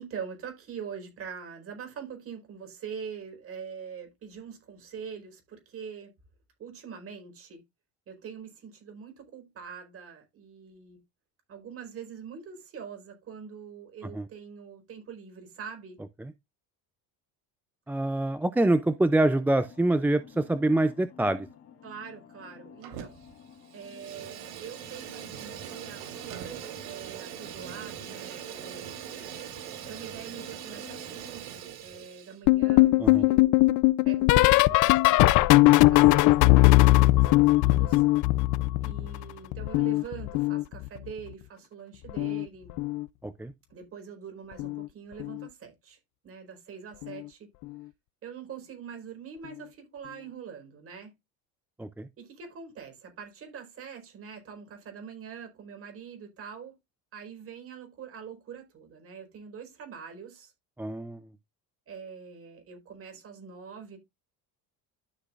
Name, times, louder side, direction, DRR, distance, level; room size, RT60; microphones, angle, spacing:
voice 1, 0.0-6.1 6.6-7.6 8.1-11.0 11.5-16.0 21.8-23.2 23.7-29.0 29.7-33.5 34.0-35.5 35.9-38.0 38.8-42.8 43.7-47.5 48.2-51.1 52.2-56.7 57.1-60.5 61.9-64.0, right 7 dB, 35° right, 4.7 m, -44 dB
voice 2, 17.9-21.5 33.0-33.2 43.2-43.5 51.8-52.1 60.8-61.3, right 2 dB, 5° right, 0.4 m, -25 dB
sound 1, 19.5-31.3, left 7 dB, 40° left, 3.2 m, -52 dB
Fire, 22.8-23.3 23.6-32.4, right 10 dB, 75° right, 3.5 m, -41 dB
sound 2, 32.5-39.2 39.5-41.1 42.1-42.4 42.7-43.0 44.6-44.9 45.2-45.4 47.0-47.1, left 19 dB, 55° left, 0.6 m, -20 dB
13.0 x 6.0 x 2.5 m
cardioid pair, 155°, 37 cm